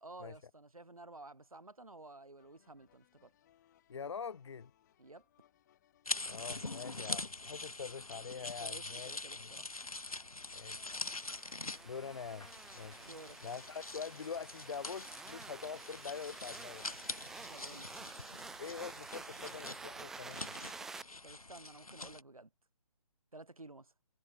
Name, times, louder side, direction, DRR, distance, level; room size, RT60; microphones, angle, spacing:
voice 1, 0.0-3.3 5.0-5.2 8.6-9.7 13.0-13.6 17.5-17.9 21.2-22.5 23.3-23.9, right 2 dB, 80° right, 4.0 m, -53 dB
sound 1, 2.4-18.9, left 12 dB, 30° left, 5.7 m, -71 dB
voice 2, 3.9-4.7 6.2-9.5 10.5-11.0 11.8-12.5 12.7-13.1 13.4-16.8 18.6-20.6, left 6 dB, 50° left, 1.1 m, -44 dB
sound 2, 6.1-22.2, left 2 dB, 90° left, 1.2 m, -44 dB
sound 3, 10.6-21.0, right 4 dB, ahead, 0.5 m, -50 dB
figure-of-eight pair, 145°, 18 cm